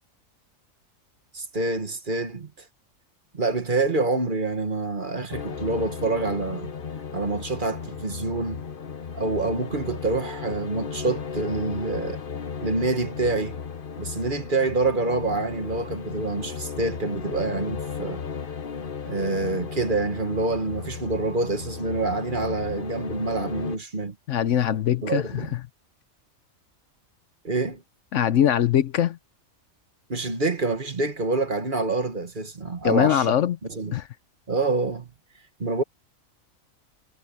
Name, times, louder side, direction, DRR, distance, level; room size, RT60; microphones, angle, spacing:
voice 1, 1.3-2.6 3.3-6.7 7.1-8.6 9.1-12.2 12.6-13.6 14.0-18.2 19.1-24.1 25.0-25.5 27.4-27.8 30.1-33.3 33.7-33.9 34.5-35.1 35.6-35.8, right 3 dB, 40° right, 1.6 m, -27 dB
sound 1, 5.3-23.8, left 6 dB, 45° left, 1.2 m, -35 dB
voice 2, 24.3-25.5 28.1-29.2 32.8-33.6 33.9-34.1, left 10 dB, 70° left, 1.0 m, -22 dB
omnidirectional pair, 1.4 m